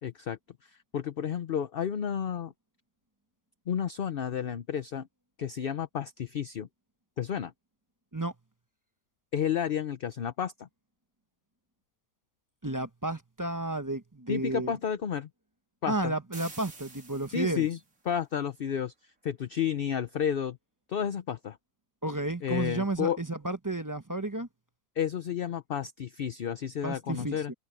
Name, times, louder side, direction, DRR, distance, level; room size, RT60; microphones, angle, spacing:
voice 1, 0.0-2.5 3.7-5.1 5.4-6.7 7.2-7.5 9.3-10.7 14.3-15.3 15.8-16.1 17.3-17.8 18.1-20.6 20.9-21.6 22.4-23.2 25.0-27.5, left 8 dB, 50° left, 0.8 m, -31 dB
voice 2, 12.6-14.7 15.9-17.6 22.0-24.5 26.8-27.5, right 2 dB, 15° right, 0.8 m, -32 dB
sound 1, 16.3-17.9, right 3 dB, 85° right, 3.6 m, -48 dB
omnidirectional pair, 1.4 m